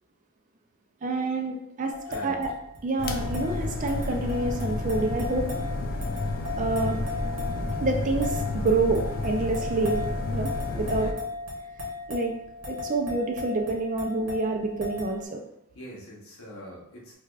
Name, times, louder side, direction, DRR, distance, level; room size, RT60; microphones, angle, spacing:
voice 1, 1.0-1.9 2.2-2.5 2.8-5.5 6.6-7.0 7.8-10.0 10.3-11.1 12.1-12.3 12.7-15.4, right 3 dB, 35° right, 3 dB, 0.4 m, -27 dB
sound 1, 1.9-15.3, left 3 dB, 65° right, 1.0 m, -37 dB
voice 2, 2.0-2.4 10.9-11.2 15.7-17.1, equal, 70° left, -3 dB, 0.9 m, -43 dB
sound 2, 3.0-11.1, left 2 dB, 45° left, 0.3 m, -31 dB
4.6 x 2.3 x 2.3 m, 0.81 s
head